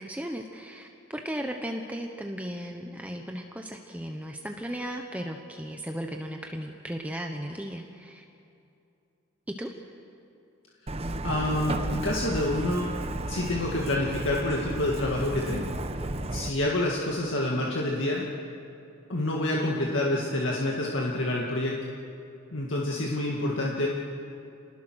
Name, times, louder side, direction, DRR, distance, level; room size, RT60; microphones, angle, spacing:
voice 1, 0.0-8.2 9.5-9.7, equal, 5° right, 3 dB, 0.9 m, -36 dB
Truck, 10.9-16.5, right 1 dB, 30° right, 1.0 m, -33 dB
voice 2, 11.2-12.9 13.3-15.7 16.3-18.3 19.1-21.8 22.5-23.9, left 1 dB, 65° left, -2 dB, 2.0 m, -27 dB
28.0 x 19.5 x 6.3 m, 2.7 s
head